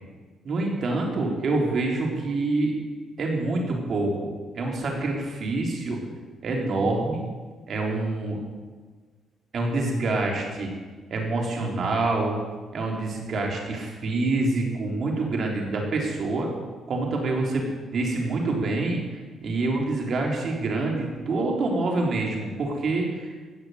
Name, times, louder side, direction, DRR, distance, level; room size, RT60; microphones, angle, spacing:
voice 1, 0.4-2.7 3.2-6.0 6.4-7.2 7.7-8.4 9.5-10.8 11.1-12.3 12.7-16.5 16.9-23.3, right 2 dB, 55° right, 0 dB, 3.7 m, -26 dB
17.5 x 6.6 x 8.0 m, 1.4 s
cardioid pair, 90°, 0 cm